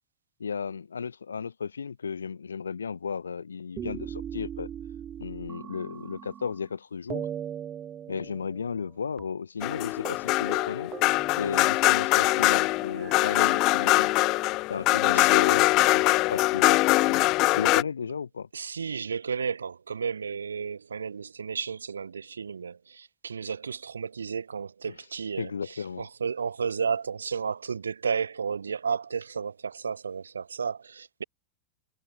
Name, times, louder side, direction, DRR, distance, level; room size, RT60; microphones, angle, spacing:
voice 1, 0.4-4.7 5.2-7.3 8.1-10.9 11.4-14.1 14.7-17.2 17.5-18.5 25.4-26.1, left 6 dB, 70° left, 4.7 m, -34 dB
sound 1, 3.8-6.7 7.1-8.9 9.2-9.3 9.6-9.8 10.1-10.2 10.5-12.2 13.0-14.5 15.3-16.2, right 9 dB, 25° right, 3.8 m, -40 dB
sound 2, 9.6-17.8, left 21 dB, 40° left, 0.4 m, -23 dB
voice 2, 15.0-15.5 18.5-31.2, right 6 dB, 70° right, 2.2 m, -33 dB
figure-of-eight pair, 90°, 0 cm